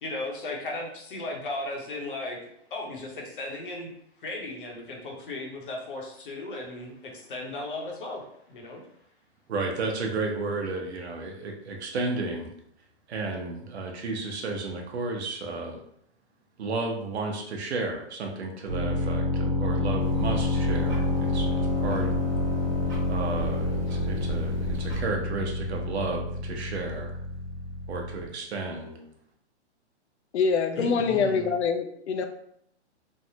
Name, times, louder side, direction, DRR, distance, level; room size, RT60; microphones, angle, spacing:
voice 1, 0.0-2.4 2.7-3.9 4.2-8.8 30.8-31.5, left 2 dB, 50° left, 0 dB, 0.8 m, -36 dB
voice 2, 9.5-12.5 13.1-15.8 16.6-22.1 23.1-27.2 27.9-29.0, right 3 dB, 65° right, 2 dB, 0.8 m, -33 dB
sound 1, 18.7-28.3, left 2 dB, 40° right, 1.0 m, -28 dB
sound 2, 20.0-25.0, right 3 dB, 15° right, 0.9 m, -36 dB
voice 3, 30.3-32.2, left 5 dB, 75° left, 6 dB, 0.5 m, -25 dB
3.3 x 2.1 x 2.7 m, 0.71 s
hypercardioid pair, 175°, 34 cm